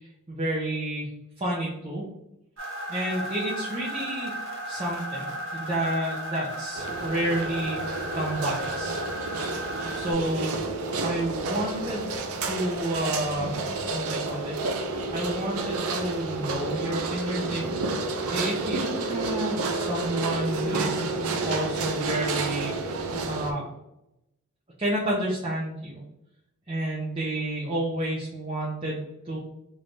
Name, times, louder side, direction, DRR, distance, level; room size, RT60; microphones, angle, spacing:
voice 1, 0.3-2.0 2.9-4.3 4.7-9.0 9.9-10.5 11.0-12.1 12.4-13.6 13.9-14.8 15.1-21.0 21.5-22.7 23.3-23.7 24.8-26.0 26.7-29.4, right 1 dB, 25° right, -6 dB, 0.7 m, -30 dB
sound 1, 2.6-10.1, right 1 dB, 60° right, 1.2 m, -35 dB
sound 2, 6.7-23.5, right 3 dB, 75° right, 0.5 m, -30 dB
3.3 x 3.3 x 2.5 m, 0.86 s
head